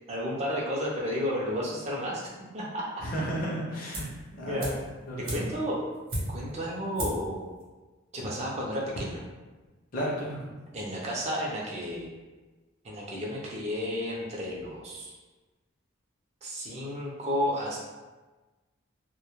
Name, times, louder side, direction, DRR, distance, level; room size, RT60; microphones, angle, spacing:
voice 1, 0.1-2.2 2.5-2.9 4.4-4.7 5.3-5.8 6.3-7.5 8.1-9.2 10.7-12.1 12.8-15.2 16.4-17.8, equal, 30° right, -4 dB, 0.4 m, -32 dB
voice 2, 3.0-4.0 4.3-4.7 5.1-5.4 9.9-10.5, equal, 45° left, -6 dB, 0.4 m, -32 dB
sound 1, 3.9-4.2 4.6-6.6 6.9-7.3 7.6-7.7, right 1 dB, 85° right, 0.8 m, -35 dB
2.2 x 2.1 x 2.9 m, 1.2 s
head